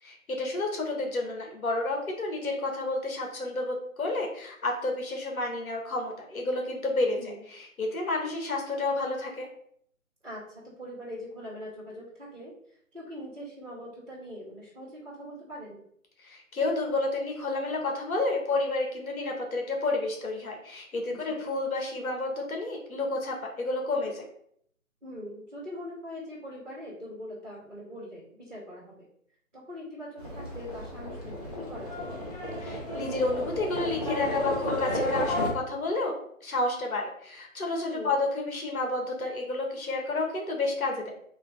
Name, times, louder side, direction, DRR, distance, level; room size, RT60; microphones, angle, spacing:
voice 1, 0.0-7.2 7.5-9.5 16.2-24.2 32.6-36.1 36.4-41.1, left 2 dB, 80° left, 1 dB, 1.2 m, -30 dB
voice 2, 7.1-7.4 10.2-12.5 12.9-15.8 21.1-21.4 25.0-29.1 29.5-32.1 37.9-38.1, equal, 5° right, -23 dB, 1.1 m, -42 dB
Livestock farm animals working animals, 30.2-35.5, left 1 dB, 30° left, 0.7 m, -32 dB
3.3 x 2.8 x 3.1 m, 0.66 s
hypercardioid pair, 170°, 42 cm